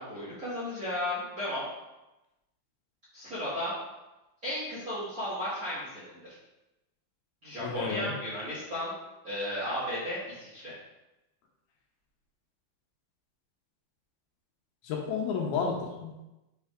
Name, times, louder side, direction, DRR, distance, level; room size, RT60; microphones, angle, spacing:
voice 1, 0.0-1.6 3.1-3.7 4.4-6.3 7.4-8.9 9.2-10.7, left 1 dB, 35° right, -10 dB, 1.5 m, -34 dB
voice 2, 7.6-8.1 14.8-16.3, left 5 dB, 75° left, 0 dB, 2.7 m, -32 dB
6.3 x 4.4 x 3.6 m, 0.99 s
omnidirectional pair, 4.5 m